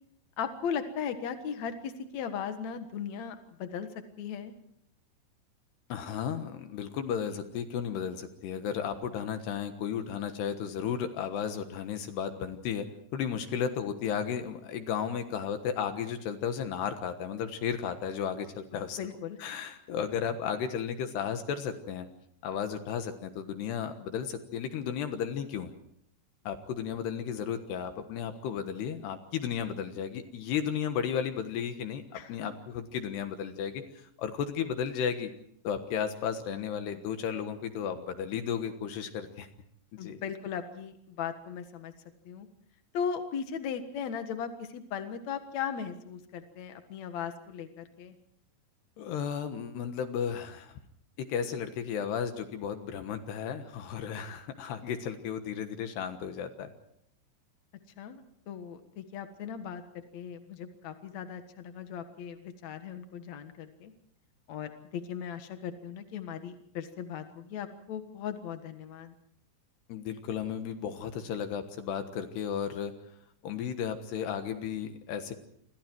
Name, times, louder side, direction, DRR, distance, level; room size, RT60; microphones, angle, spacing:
voice 1, 0.4-3.9 4.2-4.5 19.0-19.4 32.1-32.4 40.0-41.9 42.2-42.5 42.9-48.1 58.0-59.8 60.1-63.9 64.5-69.1, left 7 dB, 90° left, 8 dB, 1.5 m, -37 dB
voice 2, 5.9-12.9 13.1-19.0 19.4-22.1 22.4-25.7 26.5-33.8 34.2-35.3 35.6-39.5 40.0-40.2 49.0-50.8 51.2-56.7 69.9-72.9 73.4-75.3, left 8 dB, 65° left, 8 dB, 3.1 m, -34 dB
28.5 x 24.0 x 4.6 m, 0.68 s
omnidirectional pair, 5.8 m